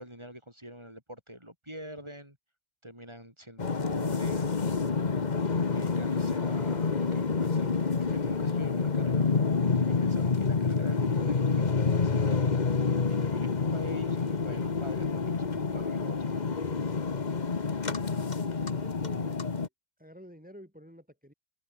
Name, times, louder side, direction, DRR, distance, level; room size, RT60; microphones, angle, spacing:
voice 1, 0.0-2.4 2.8-5.1 5.7-9.3 9.9-12.5 13.1-16.2, equal, 20° right, 7.8 m, -45 dB
sound 1, 3.6-19.7, left 4 dB, 40° left, 1.3 m, -28 dB
voice 2, 18.1-19.7 20.0-21.3, equal, 5° right, 3.9 m, -50 dB
open air
omnidirectional pair, 1.2 m